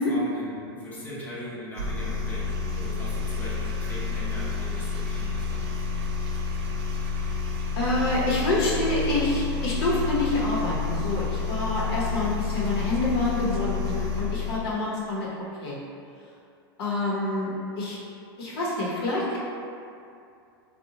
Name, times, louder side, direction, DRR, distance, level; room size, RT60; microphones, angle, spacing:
voice 1, 0.0-5.9, equal, 10° left, -8 dB, 0.6 m, -39 dB
sound 1, 1.8-14.7, left 5 dB, 85° right, 0.4 m, -29 dB
voice 2, 7.8-15.3 15.6-15.8 16.8-18.0 18.4-19.4, left 2 dB, 70° left, -5 dB, 0.7 m, -27 dB
2.7 x 2.1 x 2.7 m, 2.5 s
hypercardioid pair, 120°, 13 cm